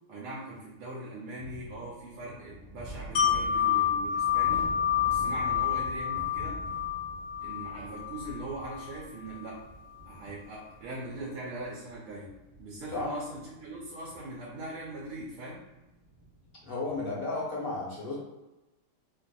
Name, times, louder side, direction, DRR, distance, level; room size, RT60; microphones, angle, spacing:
voice 1, 0.1-4.7 5.0-6.6 7.4-9.6 10.1-15.6, right 1 dB, 90° right, -4 dB, 1.6 m, -41 dB
sound 1, 1.4-17.2, right 1 dB, 40° right, 0.6 m, -47 dB
Wind chime, 3.1-8.9 9.3-9.5, left 9 dB, 80° left, 0.7 m, -28 dB
voice 2, 16.6-18.3, left 2 dB, 40° left, -5 dB, 0.9 m, -33 dB
4.5 x 2.6 x 2.3 m, 1.0 s
omnidirectional pair, 2.3 m